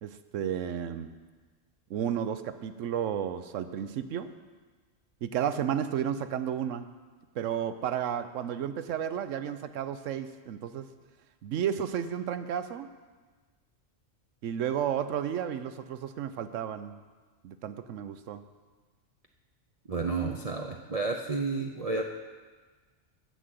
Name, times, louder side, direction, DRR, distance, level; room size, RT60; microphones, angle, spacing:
voice 1, 0.0-1.1 1.9-4.3 5.2-6.9 7.3-10.9 11.4-12.9 14.4-17.0 17.4-18.4, right 9 dB, 85° right, 11 dB, 1.0 m, -32 dB
voice 2, 19.9-22.0, right 3 dB, 40° right, 2 dB, 0.6 m, -31 dB
10.0 x 7.4 x 7.7 m, 1.4 s
omnidirectional pair, 1.3 m